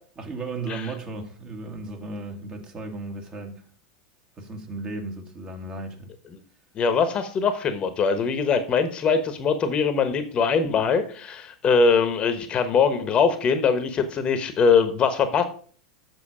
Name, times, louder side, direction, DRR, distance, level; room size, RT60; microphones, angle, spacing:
voice 1, 0.2-3.6 4.4-6.1, right 3 dB, 30° right, 4 dB, 1.9 m, -35 dB
voice 2, 6.7-15.4, left 5 dB, 35° left, 10 dB, 1.1 m, -22 dB
7.5 x 6.3 x 4.9 m, 0.44 s
hypercardioid pair, 95°, 3 cm